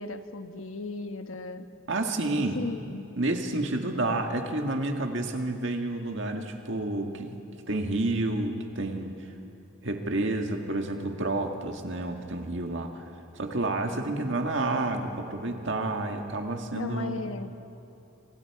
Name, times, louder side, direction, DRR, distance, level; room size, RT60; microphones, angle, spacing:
voice 1, 0.0-1.6 2.5-3.1 16.7-17.5, left 3 dB, 75° left, 7 dB, 1.2 m, -36 dB
voice 2, 1.9-2.6 3.2-9.3 9.8-13.1 13.4-17.2, right 2 dB, 60° right, 3 dB, 1.8 m, -30 dB
26.5 x 26.0 x 4.8 m, 2.7 s
head